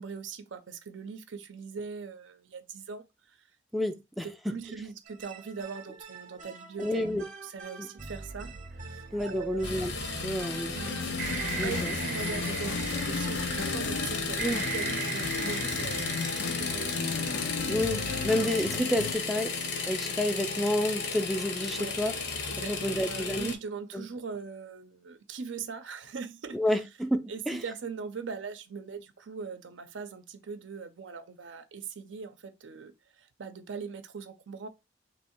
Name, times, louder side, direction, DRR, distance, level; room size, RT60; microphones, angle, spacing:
voice 1, 0.0-3.5 4.2-7.1 7.4-9.6 10.7-11.0 11.6-17.0 21.8-22.0 22.5-26.8 27.3-34.7, right 5 dB, 85° right, 0.6 m, -41 dB
voice 2, 3.7-4.3 6.8-7.2 7.8-7.9 9.1-9.9 10.2-10.8 11.5-11.9 14.4-14.7 17.7-19.5 19.8-22.1 22.6-23.5 23.9-24.1 26.5-27.6, left 1 dB, ahead, 0.3 m, -30 dB
sound 1, 5.0-18.8, right 3 dB, 45° right, 0.7 m, -39 dB
sound 2, 9.6-23.5, left 4 dB, 65° left, 0.8 m, -34 dB
sound 3, 10.8-19.1, left 6 dB, 85° left, 0.4 m, -36 dB
3.0 x 2.7 x 4.3 m
head